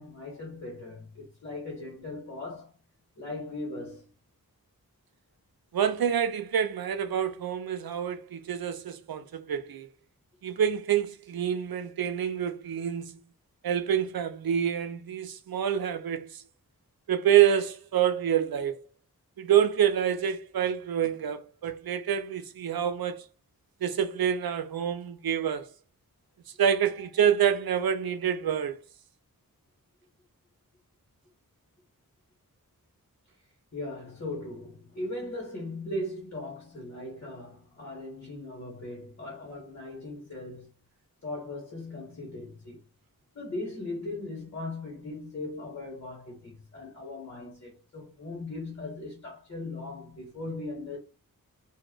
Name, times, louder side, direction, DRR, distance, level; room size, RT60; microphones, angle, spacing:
voice 1, 0.0-2.7 3.2-4.1 33.7-40.7 41.2-42.8 43.3-51.0, left 2 dB, 40° left, 1.5 m, -38 dB
voice 2, 5.7-9.9 10.4-13.2 13.6-16.4 17.1-18.8 19.4-23.2 23.8-25.7 26.6-28.8, right 9 dB, 80° right, 0.5 m, -27 dB
2.7 x 2.2 x 3.8 m
wide cardioid pair, 85°, 36 cm